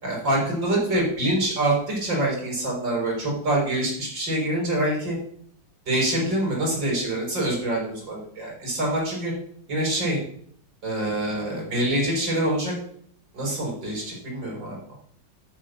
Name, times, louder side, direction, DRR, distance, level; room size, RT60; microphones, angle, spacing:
voice 1, 0.0-5.2 5.9-9.3 9.7-10.2 10.8-12.7 13.3-14.8, right 1 dB, 80° right, -3 dB, 5.9 m, -25 dB
13.0 x 6.6 x 6.4 m, 0.62 s
omnidirectional pair, 2.0 m